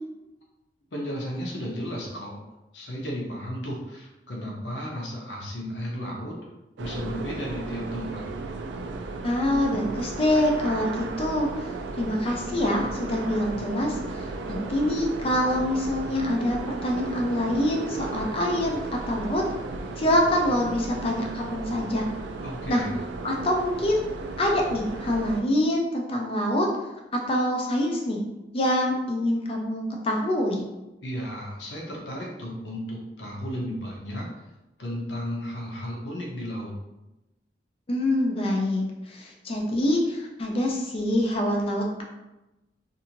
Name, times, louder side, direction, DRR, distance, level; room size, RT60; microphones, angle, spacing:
voice 1, 0.9-2.4 2.7-6.4 6.8-8.2 22.4-22.9 31.0-34.2 34.8-36.7, equal, 80° left, -2 dB, 0.7 m, -34 dB
sound 1, 6.8-25.4, right 3 dB, 80° right, 0.3 m, -35 dB
voice 2, 9.2-11.7 12.0-18.8 19.1-19.4 20.0-22.1 22.7-22.8 23.2-24.0 24.4-26.7 27.3-28.2 28.5-30.6 37.9-42.0, left 1 dB, 35° left, 0 dB, 0.4 m, -25 dB
2.6 x 2.5 x 2.8 m, 0.99 s
head